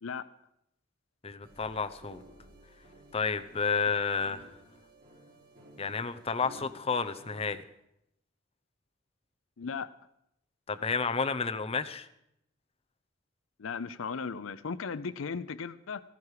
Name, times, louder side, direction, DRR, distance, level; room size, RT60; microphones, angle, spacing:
voice 1, 1.2-2.2 3.1-4.5 5.8-7.6 10.7-12.1, left 5 dB, 30° left, 9 dB, 0.7 m, -31 dB
sound 1, 1.4-7.4, right 1 dB, 45° right, 3.5 m, -54 dB
voice 2, 9.6-9.9 13.6-16.0, left 5 dB, 80° left, 15 dB, 0.5 m, -36 dB
15.5 x 14.0 x 4.9 m, 0.79 s
head